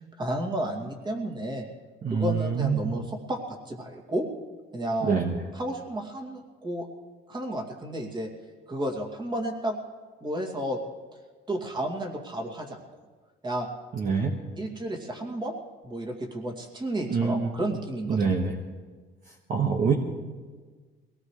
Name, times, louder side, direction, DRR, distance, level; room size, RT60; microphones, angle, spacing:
voice 1, 0.2-1.6 2.1-4.3 4.7-5.2 5.5-6.9 7.3-8.3 8.7-9.8 10.2-10.8 11.5-12.8 13.4-13.7 14.6-15.5 15.8-18.2, right 1 dB, 25° right, 1 dB, 2.4 m, -32 dB
voice 2, 2.0-2.9 5.0-5.4 13.9-14.3 17.1-17.4 18.1-18.5 19.5-19.9, right 5 dB, 45° right, 0 dB, 1.5 m, -25 dB
22.5 x 18.0 x 3.3 m, 1.4 s
cardioid pair, 120°, 19 cm